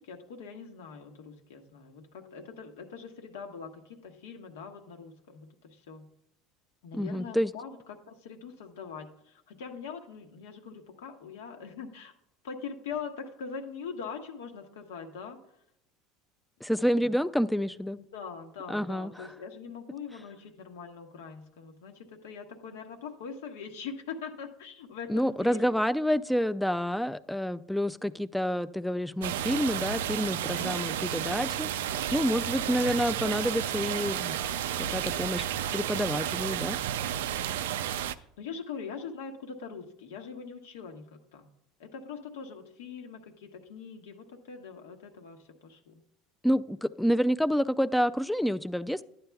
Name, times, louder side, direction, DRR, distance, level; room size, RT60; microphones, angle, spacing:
voice 1, 0.0-6.1 6.8-12.1 12.4-15.4 16.9-17.1 18.1-25.7 32.4-32.8 38.2-41.5 41.8-46.0, left 6 dB, 90° left, 4 dB, 1.2 m, -42 dB
voice 2, 6.9-7.5 16.6-18.0 18.7-19.3 25.1-31.7 32.1-34.4 34.8-35.5 35.7-36.8 46.4-49.0, equal, 5° left, 14 dB, 0.3 m, -28 dB
sound 1, 29.2-38.2, right 10 dB, 90° right, 0.3 m, -32 dB
11.5 x 8.6 x 2.3 m, 0.76 s
supercardioid pair, 105°, 0 cm